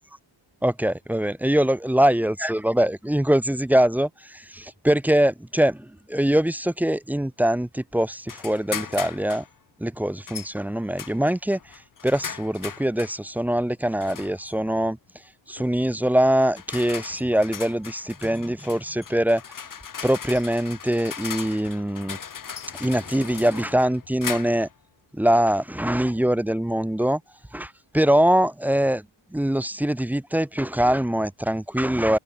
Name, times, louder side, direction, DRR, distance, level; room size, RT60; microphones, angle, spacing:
voice 1, 0.6-9.4 9.8-15.0 15.5-19.4 20.0-22.2 22.8-24.7 25.1-27.2 27.5-29.1 29.3-32.2, right 1 dB, 5° right, 0.8 m, -23 dB
sound 1, 8.3-9.5 10.3-10.5 11.0-13.2 14.0-14.5 15.6-15.8 16.4-24.7, left 7 dB, 40° left, 2.4 m, -38 dB
wide cardioid pair, 145°, 48 cm